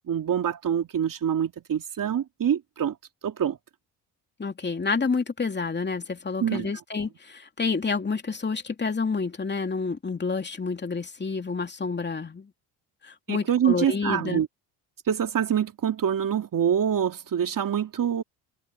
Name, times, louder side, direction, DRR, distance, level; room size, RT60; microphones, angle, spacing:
voice 1, 0.1-3.0 3.2-3.6 6.4-6.7 13.3-14.5 15.0-18.2, right 9 dB, 50° right, 3.1 m, -25 dB
voice 2, 4.4-12.5 13.0-14.4, left 4 dB, 25° left, 2.9 m, -29 dB
supercardioid pair, 70°, 43 cm